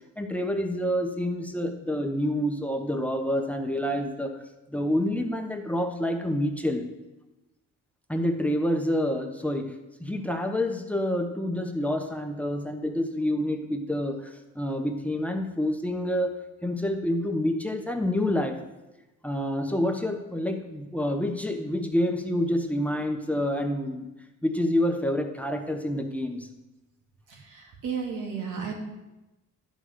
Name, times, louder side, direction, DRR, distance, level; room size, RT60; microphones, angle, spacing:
voice 1, 0.2-4.4 4.7-6.9 8.1-18.6 19.2-24.1 24.4-26.5, left 1 dB, 5° left, 5 dB, 1.0 m, -28 dB
voice 2, 27.3-28.7, right 6 dB, 80° right, 0 dB, 2.4 m, -33 dB
11.0 x 5.4 x 6.5 m, 1.0 s
cardioid pair, 90°, 30 cm